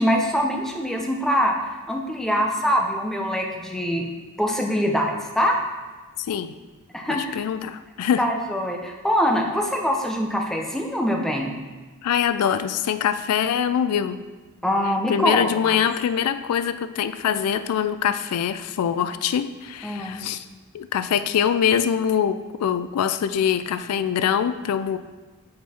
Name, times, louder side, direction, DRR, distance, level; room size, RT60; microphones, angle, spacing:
voice 1, 0.0-1.6 1.9-4.1 4.4-5.6 6.9-7.4 8.2-11.5 14.6-15.8 19.8-20.2, equal, ahead, 1 dB, 0.6 m, -23 dB
voice 2, 7.1-8.3 12.0-14.2 15.1-20.5 20.7-25.0, left 8 dB, 85° left, 12 dB, 0.3 m, -23 dB
7.3 x 4.5 x 4.2 m, 1.2 s
head